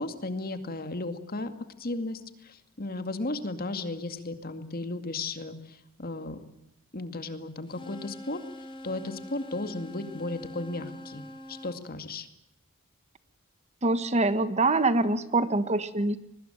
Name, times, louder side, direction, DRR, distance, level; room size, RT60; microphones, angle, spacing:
voice 1, 0.0-1.5 1.8-6.4 6.9-8.4 8.8-11.2 11.5-12.3, left 2 dB, 45° left, 9 dB, 2.3 m, -35 dB
sound 1, 7.7-11.8, left 1 dB, 25° left, 3.7 m, -44 dB
voice 2, 13.8-16.2, right 2 dB, 35° right, 13 dB, 1.4 m, -24 dB
23.0 x 21.0 x 9.1 m, 0.83 s
head